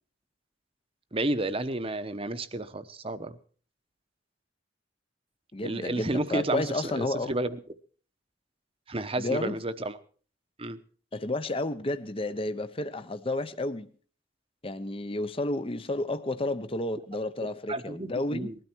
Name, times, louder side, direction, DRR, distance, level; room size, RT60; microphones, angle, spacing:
voice 1, 1.1-3.4 5.6-6.6 6.9-7.6 8.9-10.0 10.6-10.8 17.7-18.5, right 2 dB, 30° right, 0.9 m, -31 dB
voice 2, 5.5-7.3 9.2-9.6 11.1-13.9 14.6-18.5, left 2 dB, 30° left, 0.7 m, -31 dB
20.5 x 13.0 x 4.5 m
head